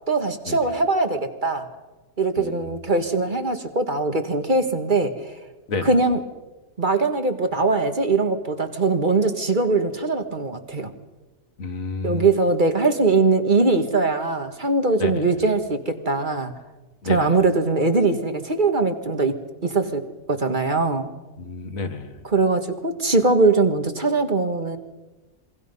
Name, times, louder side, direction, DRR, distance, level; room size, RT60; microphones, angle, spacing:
voice 1, 0.1-1.7 2.2-5.3 5.8-6.2 6.8-10.9 12.0-16.5 17.0-19.3 19.6-21.1 22.2-24.8, right 3 dB, 35° right, 7 dB, 1.7 m, -21 dB
voice 2, 2.4-2.8 5.7-6.0 11.6-12.3 15.0-15.3 17.0-17.3 21.4-22.2, left 4 dB, 85° left, 9 dB, 2.0 m, -30 dB
27.0 x 23.5 x 5.5 m, 1.2 s
omnidirectional pair, 1.4 m